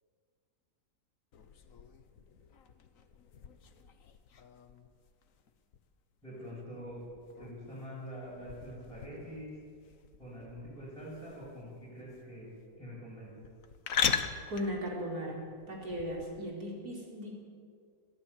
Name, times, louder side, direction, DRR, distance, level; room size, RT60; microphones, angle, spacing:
sound 1, 1.3-16.4, left 6 dB, 60° left, 1.4 m, -41 dB
voice 1, 6.2-7.0 7.4-9.5 10.2-13.4, equal, ahead, -10 dB, 7.2 m, -45 dB
voice 2, 14.5-15.4 15.7-17.3, equal, 75° right, -1 dB, 4.7 m, -37 dB
22.0 x 14.5 x 8.5 m, 2.1 s
omnidirectional pair, 1.6 m